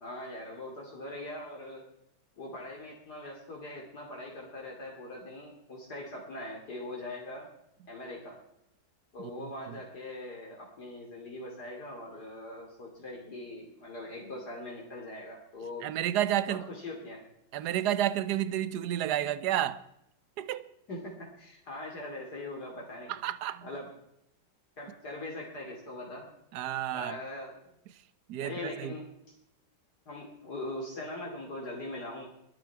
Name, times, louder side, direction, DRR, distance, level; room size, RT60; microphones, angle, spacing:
voice 1, 0.0-1.8 2.4-7.5 7.9-8.4 9.1-15.9 16.5-17.2 20.9-23.1 23.6-23.9 24.8-26.3 26.9-27.5 28.4-29.1 30.1-32.3, left 1 dB, 60° left, 3.2 m, -41 dB
voice 2, 9.2-9.8 15.8-16.7 17.5-19.8 20.4-20.7 23.1-23.7 26.5-27.2 28.3-29.0, right 12 dB, 70° right, 1.3 m, -31 dB
21.5 x 10.5 x 4.7 m
omnidirectional pair, 2.0 m